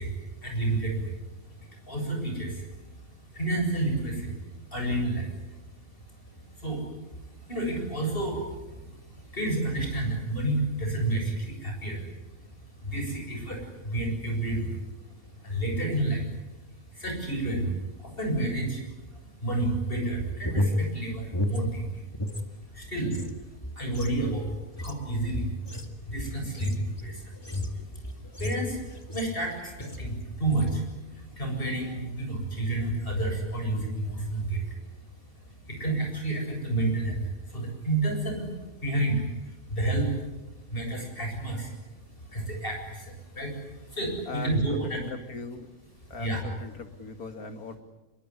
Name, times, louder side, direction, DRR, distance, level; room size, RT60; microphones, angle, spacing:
voice 1, 0.0-16.4 16.9-22.1 22.5-34.9 35.2-40.3 40.6-45.0 46.0-46.4, right 2 dB, 40° left, 2 dB, 8.1 m, -31 dB
sound 1, 20.2-22.5 22.8-29.5 29.8-30.2 30.5-30.8, left 1 dB, 15° left, 2.0 m, -32 dB
voice 2, 44.3-45.0 45.3-45.7 46.1-47.7, left 3 dB, 85° left, 7 dB, 2.7 m, -39 dB
26.0 x 22.5 x 9.9 m, 1.1 s
omnidirectional pair, 1.5 m